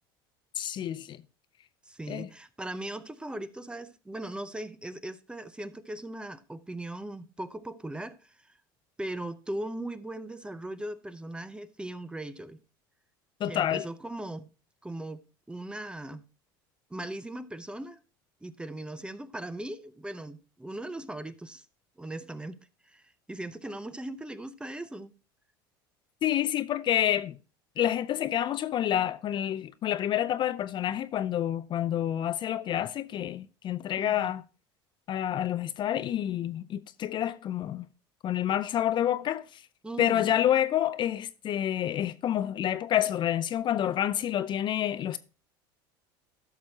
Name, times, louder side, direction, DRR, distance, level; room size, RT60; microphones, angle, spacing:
voice 1, 0.6-1.2 2.1-2.3 13.4-13.8 26.2-27.4 27.8-34.4 35.1-37.9 38.2-39.6 40.0-45.2, left 11 dB, 40° left, 0.5 m, -28 dB
voice 2, 1.9-8.5 9.0-12.6 13.4-14.5 14.8-16.2 16.9-18.0 18.4-21.7 22.0-25.1 34.0-34.3 39.8-40.4, right 1 dB, 10° right, 0.6 m, -39 dB
12.5 x 6.2 x 2.8 m
hypercardioid pair, 90°, 12 cm